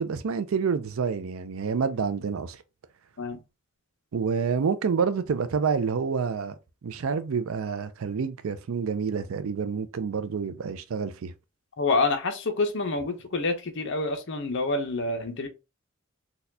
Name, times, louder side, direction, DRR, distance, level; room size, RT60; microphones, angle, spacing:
voice 1, 0.0-2.6 4.1-6.6 6.8-11.3, right 6 dB, 80° right, 0.4 m, -28 dB
voice 2, 11.8-15.5, left 3 dB, 60° left, 0.7 m, -27 dB
4.0 x 2.3 x 2.7 m
head